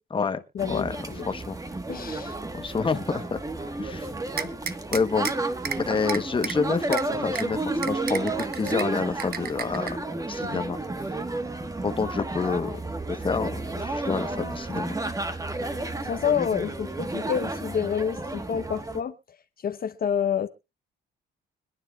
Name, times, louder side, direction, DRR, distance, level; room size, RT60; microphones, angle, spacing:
voice 1, 0.2-1.3 1.9-2.4 15.6-19.1 19.6-20.5, left 8 dB, 50° left, 0.9 m, -29 dB
sound 1, 0.6-19.0, right 2 dB, 15° right, 1.4 m, -32 dB
voice 2, 0.7-1.6 2.5-3.4 3.8-4.1 4.9-5.3 5.8-9.9 10.3-10.8 11.8-12.8 13.1-15.0, left 5 dB, 25° left, 1.1 m, -28 dB
sound 2, 4.4-5.3 5.6-5.8 6.1-6.5 6.9-7.0 7.4-7.5 7.8-8.8 9.2-9.9, right 8 dB, 50° right, 1.0 m, -31 dB
25.5 x 9.8 x 2.4 m
cardioid pair, 90°, 20 cm